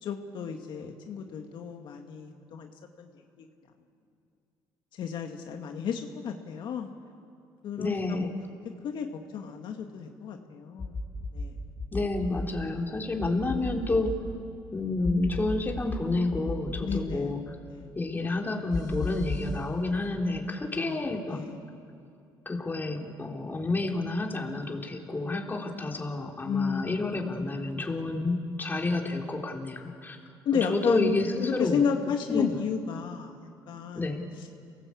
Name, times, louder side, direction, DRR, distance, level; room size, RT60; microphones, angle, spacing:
voice 1, 0.0-2.7 3.0-3.5 5.0-6.9 7.6-8.3 8.8-9.1 9.3-10.9 11.3-11.6 16.8-17.3 17.7-17.9 20.7-21.6 26.4-27.1 30.5-33.4 33.7-34.0, left 6 dB, 65° left, 4 dB, 1.8 m, -32 dB
voice 2, 7.8-8.3 11.9-14.2 14.7-17.6 17.9-21.4 22.5-30.2 30.7-31.8 32.3-32.5 33.9-34.2, left 2 dB, 25° left, 1 dB, 3.6 m, -29 dB
sound 1, 10.8-11.4 11.8-12.4 13.2-14.1 15.0-16.0 16.3-17.0 18.7-19.5, left 3 dB, 50° left, 5.5 m, -33 dB
28.0 x 18.5 x 8.5 m, 2.5 s
supercardioid pair, 80°, 8 cm